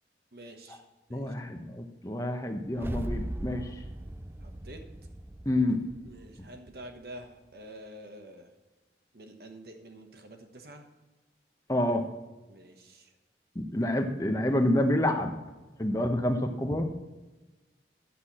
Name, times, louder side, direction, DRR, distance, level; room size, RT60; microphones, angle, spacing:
voice 1, 0.3-0.8 1.1-1.3 4.4-4.8 6.1-8.5 9.1-10.8 12.5-13.1, right 1 dB, 60° right, 5 dB, 1.2 m, -47 dB
voice 2, 1.1-3.7 5.5-5.8 11.7-12.0 13.6-15.3 15.8-16.9, left 1 dB, 20° left, 5 dB, 0.8 m, -28 dB
sound 1, 2.7-7.0, right 1 dB, 15° right, 0.3 m, -39 dB
10.0 x 8.1 x 4.3 m, 1.1 s
head